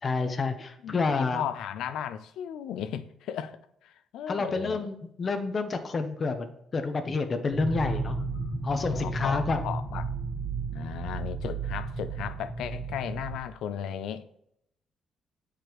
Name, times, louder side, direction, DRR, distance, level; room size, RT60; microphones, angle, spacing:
voice 1, 0.0-1.4 4.3-8.2 8.6-9.6, left 4 dB, 40° left, 0.6 m, -29 dB
voice 2, 0.8-4.8 7.7-10.1 10.7-14.2, left 9 dB, 85° left, 0.5 m, -36 dB
sound 1, 7.5-13.4, right 4 dB, 5° left, 1.0 m, -33 dB
7.9 x 4.9 x 3.0 m
cardioid pair, 90°, 0 cm